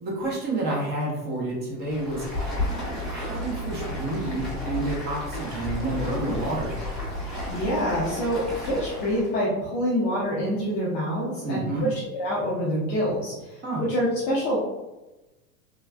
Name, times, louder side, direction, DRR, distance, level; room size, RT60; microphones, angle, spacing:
voice 1, 0.0-2.3 2.9-6.8 11.4-11.9 13.6-13.8, right 2 dB, 20° right, -3 dB, 0.6 m, -29 dB
Stream, 1.8-9.3, left 1 dB, ahead, 1.0 m, -32 dB
voice 2, 7.5-14.6, equal, 25° left, -6 dB, 0.4 m, -26 dB
3.3 x 2.3 x 2.2 m, 1.0 s
hypercardioid pair, 125°, 47 cm